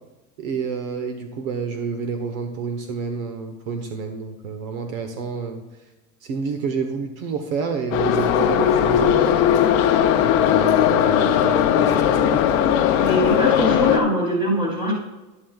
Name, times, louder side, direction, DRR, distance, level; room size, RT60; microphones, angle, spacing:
voice 1, 0.4-5.6 6.2-9.6 10.2-12.6, right 5 dB, 65° right, 6 dB, 1.2 m, -29 dB
Subway metro underground, 7.9-14.0, left 9 dB, 35° left, 0.6 m, -18 dB
voice 2, 12.9-14.9, equal, 10° right, -3 dB, 3.0 m, -22 dB
11.0 x 11.0 x 2.4 m, 1.1 s
supercardioid pair, 155°, 45 cm